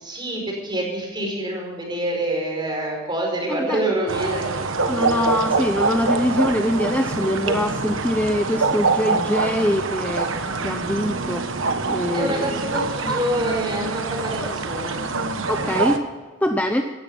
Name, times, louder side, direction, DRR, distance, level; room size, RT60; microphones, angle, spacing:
voice 1, 0.0-5.5 12.1-15.0, right 1 dB, 20° right, 0 dB, 4.9 m, -27 dB
sound 1, 4.1-16.0, right 3 dB, 65° right, 1.3 m, -25 dB
voice 2, 4.9-10.3 10.6-11.5 11.9-12.6 14.4-14.6 15.5-16.0 16.4-16.8, left 1 dB, 5° left, 5 dB, 0.7 m, -23 dB
17.0 x 13.5 x 5.4 m, 1.4 s
head